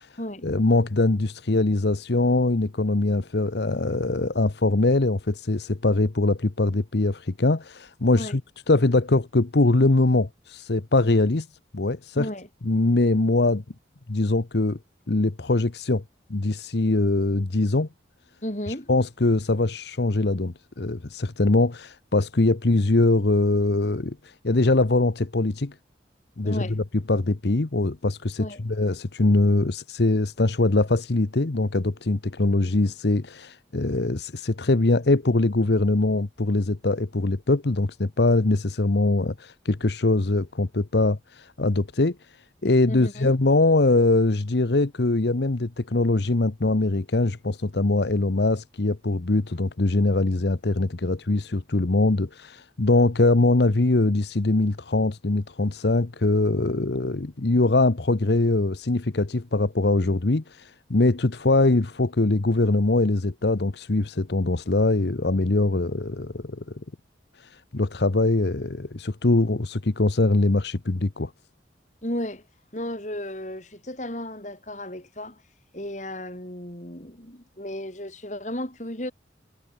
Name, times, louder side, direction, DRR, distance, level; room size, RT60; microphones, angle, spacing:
voice 1, 0.4-8.4 8.7-11.5 11.7-12.3 12.6-13.6 14.1-14.8 15.1-16.0 16.3-17.9 18.9-25.7 26.4-42.2 42.6-66.6 67.4-71.3, left 2 dB, 70° left, 1.0 m, -22 dB
voice 2, 12.1-12.5 18.4-18.9 26.4-26.8 28.4-28.6 42.9-43.4 72.0-72.4 72.7-75.4 75.7-79.1, left 1 dB, 40° left, 4.6 m, -34 dB
head